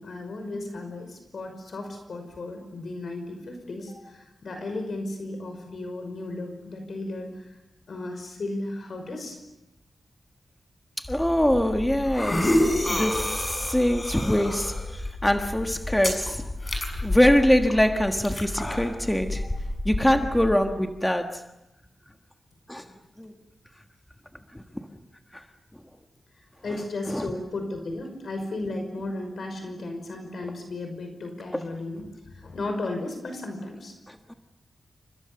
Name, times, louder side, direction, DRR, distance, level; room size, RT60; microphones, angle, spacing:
voice 1, 0.0-7.6 7.9-9.4 26.6-33.9, left 2 dB, 65° left, 5 dB, 5.5 m, -35 dB
sound 1, 11.0-20.5, left 1 dB, 20° left, 6.3 m, -29 dB
voice 2, 11.0-12.6 12.9-16.5 17.0-19.4 19.8-21.4 22.7-22.9 23.2-23.3 24.5-24.8 25.3-25.4 26.7-26.8 27.1-27.3 31.5-31.6 34.1-34.3, equal, 5° left, 4 dB, 1.5 m, -24 dB
30.0 x 28.5 x 6.9 m, 0.93 s
wide cardioid pair, 160°, 0 cm